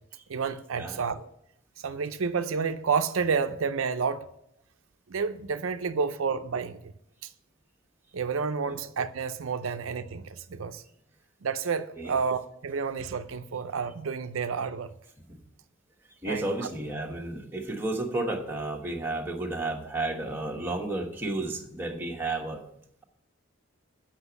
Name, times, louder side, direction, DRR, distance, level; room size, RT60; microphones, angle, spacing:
voice 1, 0.3-1.3 1.8-4.3 5.1-6.9 8.1-10.8 11.4-14.9 16.3-16.7, right 5 dB, 85° right, 0.5 m, -30 dB
voice 2, 16.2-22.7, right 2 dB, 10° right, 1.2 m, -32 dB
8.2 x 6.0 x 6.9 m
head